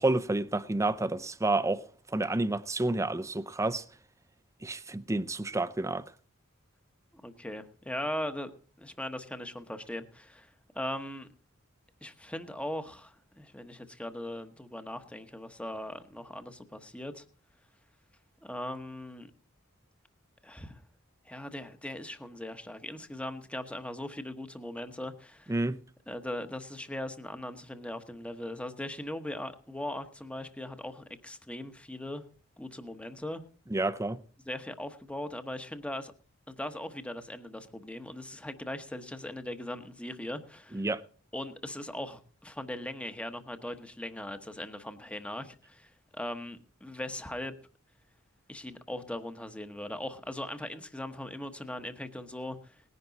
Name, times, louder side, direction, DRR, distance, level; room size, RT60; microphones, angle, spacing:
voice 1, 0.0-1.8 2.1-3.8 4.6-6.0 25.5-25.8 33.7-34.2 40.7-41.0, right 2 dB, 15° right, 0.6 m, -29 dB
voice 2, 7.2-8.5 8.8-11.3 12.0-17.2 18.4-19.3 20.4-20.8 21.2-25.5 26.1-32.2 32.6-33.4 34.4-36.1 36.5-40.9 41.3-47.6 48.5-52.8, left 1 dB, 5° left, 1.1 m, -39 dB
19.0 x 10.5 x 4.0 m
head